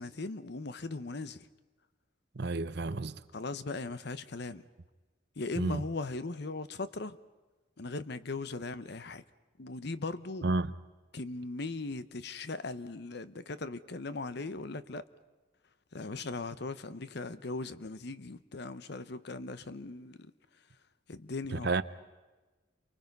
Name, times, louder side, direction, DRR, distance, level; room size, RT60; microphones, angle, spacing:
voice 1, 0.0-1.5 3.3-4.6 5.4-7.2 7.8-9.2 9.6-10.5 11.1-15.0 15.9-20.3 21.1-21.8, left 3 dB, 55° left, 0.8 m, -39 dB
voice 2, 2.3-3.2 5.6-5.8 10.4-10.7 21.5-21.8, right 3 dB, 55° right, 0.7 m, -31 dB
29.5 x 24.0 x 5.4 m
head